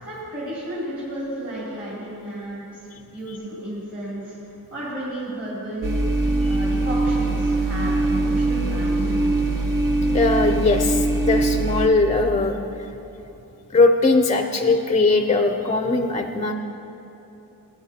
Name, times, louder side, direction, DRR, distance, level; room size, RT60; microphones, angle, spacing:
voice 1, 0.0-4.4 4.7-5.9 6.4-9.4, right 1 dB, 35° right, -10 dB, 2.7 m, -33 dB
sound 1, 5.8-11.9, right 2 dB, 65° right, 0.9 m, -22 dB
voice 2, 10.1-12.6 13.7-16.5, left 3 dB, 20° left, 5 dB, 0.4 m, -20 dB
18.5 x 9.3 x 2.8 m, 2.9 s
wide cardioid pair, 170°, 35 cm